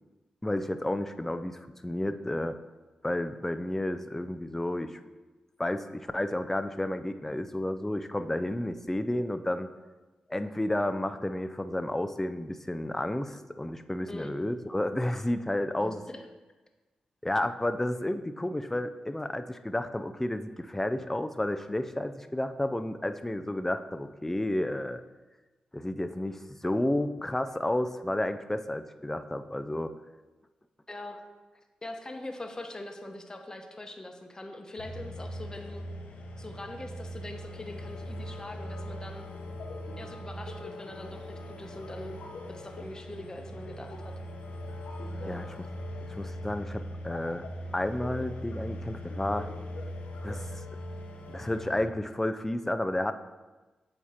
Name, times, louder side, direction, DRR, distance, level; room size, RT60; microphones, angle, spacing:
voice 1, 0.4-2.6 3.0-5.0 5.6-9.7 10.3-16.0 17.2-25.0 25.7-29.9 45.3-45.5 46.1-47.5 47.7-49.5 50.2-50.6 51.3-53.1, left 1 dB, 10° left, 9 dB, 0.4 m, -31 dB
voice 2, 15.8-16.2 30.9-31.2 31.8-35.8 36.4-39.3 40.0-42.2 42.5-44.2 45.2-45.4, left 1 dB, 30° left, 4 dB, 0.9 m, -42 dB
sound 1, 34.8-51.8, equal, 75° left, 0.8 m, -40 dB
8.2 x 2.9 x 4.4 m, 1.2 s
supercardioid pair, 45°, 2 cm